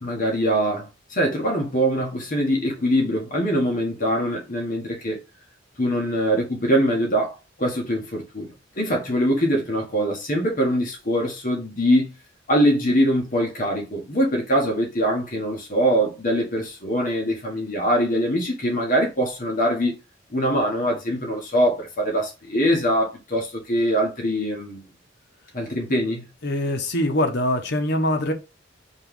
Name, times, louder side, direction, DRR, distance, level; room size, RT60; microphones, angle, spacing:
voice 1, 0.0-5.2 5.8-12.1 12.5-20.0 20.3-24.8 25.5-26.3, equal, 45° left, 1.2 m, -23 dB
voice 2, 26.4-28.3, left 1 dB, 60° left, 1.0 m, -23 dB
4.3 x 3.1 x 3.6 m
head